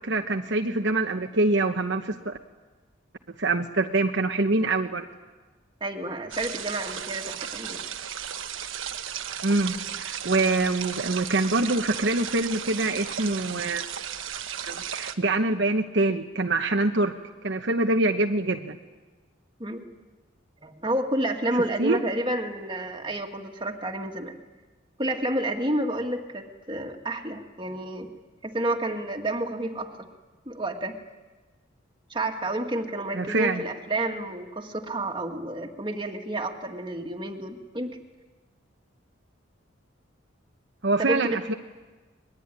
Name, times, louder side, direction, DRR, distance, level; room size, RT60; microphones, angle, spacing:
voice 1, 0.0-2.4 3.4-5.0 9.4-13.8 14.7-17.1 17.4-18.8 21.8-22.0 33.1-33.6 40.8-41.5, right 2 dB, 60° right, 4 dB, 1.1 m, -25 dB
voice 2, 5.8-7.8 19.6-19.8 20.6-24.4 25.0-28.1 28.4-29.9 30.5-31.0 32.1-38.0 41.0-41.4, right 1 dB, 25° right, 3 dB, 2.0 m, -30 dB
sound 1, 6.3-15.2, right 9 dB, 75° right, 1.3 m, -35 dB
24.5 x 21.0 x 9.9 m, 1.3 s
head